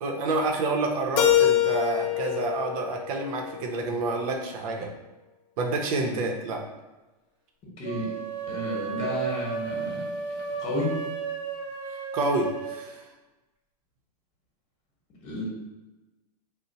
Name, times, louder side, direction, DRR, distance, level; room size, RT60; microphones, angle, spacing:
voice 1, 0.0-4.9 5.6-6.6 12.1-13.1, right 3 dB, 60° right, 2 dB, 0.7 m, -28 dB
Keyboard (musical), 1.2-4.1, left 11 dB, 50° left, 0.5 m, -25 dB
voice 2, 7.8-8.1 8.5-10.0 10.3-10.9 15.2-15.5, left 1 dB, 30° left, -3 dB, 1.1 m, -32 dB
sound 1, 7.8-12.8, right 6 dB, 25° right, 0.7 m, -34 dB
2.7 x 2.1 x 4.0 m, 1.1 s
hypercardioid pair, 125°, 21 cm